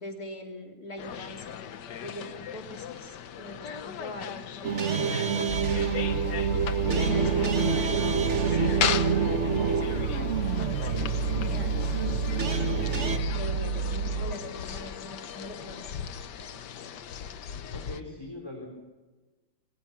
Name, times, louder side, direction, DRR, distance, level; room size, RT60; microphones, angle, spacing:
voice 1, 0.0-1.6 2.0-6.1 6.5-11.9 13.3-15.8, left 1 dB, 50° left, 1 dB, 3.8 m, -43 dB
sound 1, 1.0-18.0, left 8 dB, 65° left, 1.6 m, -37 dB
sound 2, 4.6-13.2, right 6 dB, 40° right, 1.6 m, -28 dB
sound 3, 5.5-14.3, right 4 dB, 65° right, 2.8 m, -31 dB
voice 2, 17.7-18.7, left 2 dB, 15° left, 0 dB, 4.4 m, -41 dB
27.5 x 23.0 x 6.2 m, 1.2 s
omnidirectional pair, 2.0 m